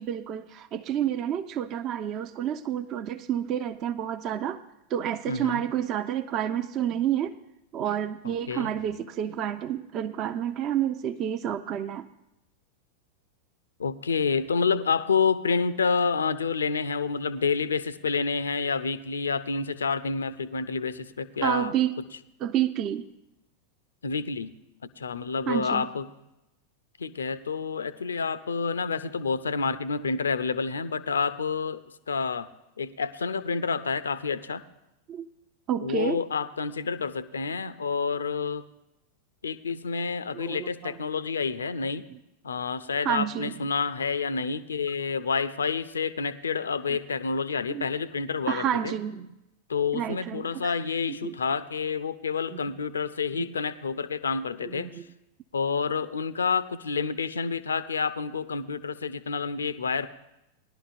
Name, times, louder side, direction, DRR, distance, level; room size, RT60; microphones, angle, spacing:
voice 1, 0.0-4.6 4.9-7.3 7.7-12.1 21.4-22.0 22.4-23.1 25.5-25.9 35.1-35.3 35.7-36.2 40.3-41.0 42.1-42.2 43.0-43.5 46.9-47.0 47.7-47.9 48.5-49.3 49.9-50.7 51.1-51.4 52.5-52.6 53.3-53.5 54.6-55.1, right 10 dB, 35° right, 10 dB, 0.5 m, -29 dB
voice 2, 5.3-5.6 8.5-8.7 13.8-21.7 24.0-24.5 25.0-26.1 27.0-31.8 32.1-32.5 32.8-34.6 35.8-38.6 39.4-42.0 42.4-48.9 49.7-54.9 55.5-60.1, left 5 dB, 70° left, 15 dB, 0.4 m, -28 dB
19.0 x 11.5 x 2.5 m, 0.90 s
figure-of-eight pair, 90°, 0 cm